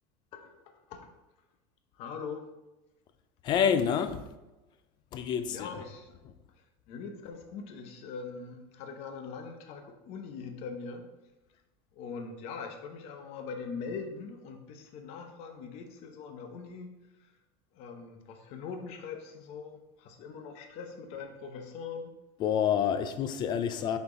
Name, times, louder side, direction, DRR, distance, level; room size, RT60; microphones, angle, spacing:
voice 1, 2.0-2.5 5.5-6.1 6.9-11.0 12.0-16.9 17.7-22.1, left 5 dB, 50° left, 0.9 m, -42 dB
voice 2, 3.4-4.2 5.1-5.7 22.4-24.0, left 8 dB, 35° left, 0.5 m, -27 dB
6.9 x 4.4 x 3.9 m
cardioid pair, 155°, 13 cm